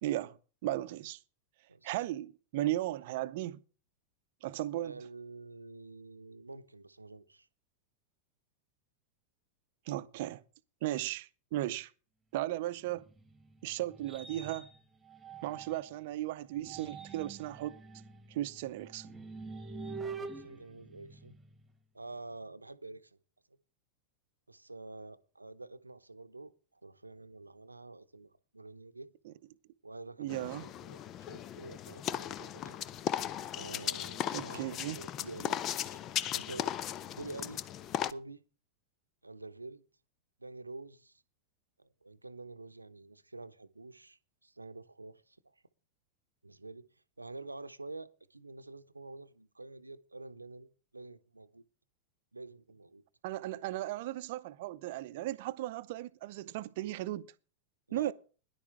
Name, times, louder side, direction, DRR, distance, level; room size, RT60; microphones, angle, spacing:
voice 1, 0.0-0.4 0.6-1.2 1.8-3.6 4.4-4.9 9.9-10.4 10.8-11.9 12.3-13.1 13.6-14.7 15.4-17.8 18.3-19.1 29.3-29.4 30.2-30.7 34.3-35.0 53.2-57.3 57.9-58.1, right 15 dB, 50° right, 0.7 m, -36 dB
voice 2, 4.8-7.5 20.1-21.3 21.9-23.2 24.5-29.1 29.8-32.8 33.6-36.0 36.3-36.7 37.1-37.6 38.1-38.4 39.2-39.8 40.4-41.2 41.8-45.5 46.4-46.9 47.2-51.6 52.3-53.0 57.9-58.1, right 3 dB, 80° right, 0.8 m, -48 dB
sound 1, 12.9-16.0 16.5-21.7, right 4 dB, 15° right, 1.6 m, -46 dB
sound 2, 30.3-38.1, left 11 dB, 35° left, 0.6 m, -37 dB
17.5 x 11.0 x 3.5 m
figure-of-eight pair, 90°, 0 cm